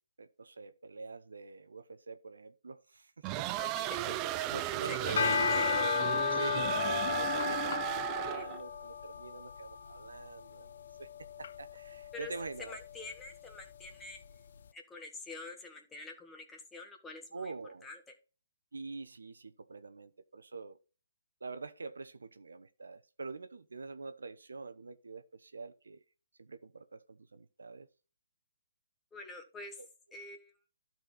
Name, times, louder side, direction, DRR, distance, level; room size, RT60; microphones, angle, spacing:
voice 1, 0.2-4.2 4.5-5.6 6.3-10.7 11.0-12.8 17.3-17.9 18.7-20.8 21.4-26.0 26.4-27.9 29.8-29.9, right 4 dB, 75° right, 0.9 m, -45 dB
sound 1, 3.2-8.6, right 15 dB, 25° right, 0.4 m, -35 dB
voice 2, 3.6-4.2 4.9-5.7 8.3-8.4 12.1-12.3 12.6-14.2 14.7-17.5 17.8-18.0 29.1-29.8 30.1-30.5, left 3 dB, 10° left, 1.7 m, -46 dB
sound 2, 5.0-14.4, left 6 dB, 60° left, 0.6 m, -35 dB
12.5 x 4.5 x 4.1 m
figure-of-eight pair, 140°, 0 cm